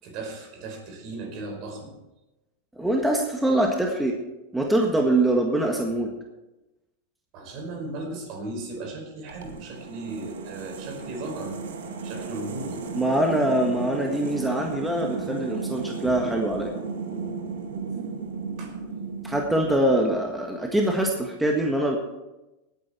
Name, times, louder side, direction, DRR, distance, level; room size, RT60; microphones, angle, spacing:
voice 1, 0.0-1.9 7.3-11.6 12.0-12.8 18.6-18.7, right 2 dB, 50° right, 3 dB, 4.8 m, -36 dB
voice 2, 2.8-4.2 4.5-6.1 12.9-16.7 19.2-22.0, right 1 dB, 5° right, 1 dB, 1.6 m, -23 dB
sound 1, 9.3-20.4, right 4 dB, 85° right, 2.0 m, -35 dB
18.0 x 9.1 x 4.4 m, 1.0 s
hypercardioid pair, 120°, 0 cm